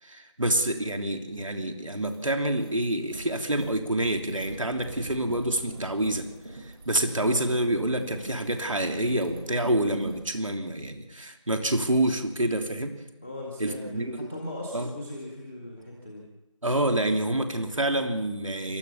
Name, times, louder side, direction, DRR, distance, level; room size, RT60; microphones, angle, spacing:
voice 1, 0.0-6.3 6.5-12.9 13.6-14.3 14.7-14.9 16.6-18.8, right 1 dB, 75° right, 5 dB, 3.1 m, -27 dB
sound 1, 1.4-1.5 1.8-10.3, right 2 dB, 45° right, 6.5 m, -42 dB
voice 2, 13.2-16.2, left 1 dB, ahead, -6 dB, 0.8 m, -38 dB
28.5 x 13.0 x 7.0 m, 1.0 s
figure-of-eight pair, 170°, 17 cm